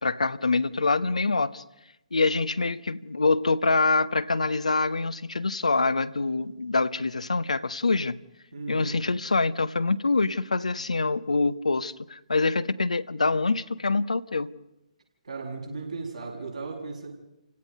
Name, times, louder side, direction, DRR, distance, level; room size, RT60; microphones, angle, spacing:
voice 1, 0.0-1.6 2.1-8.2 8.7-14.5, left 3 dB, 70° left, 0.9 m, -25 dB
voice 2, 8.5-9.0 15.2-17.1, right 3 dB, 70° right, 7.0 m, -36 dB
29.5 x 17.0 x 5.4 m
figure-of-eight pair, 130°, 4 cm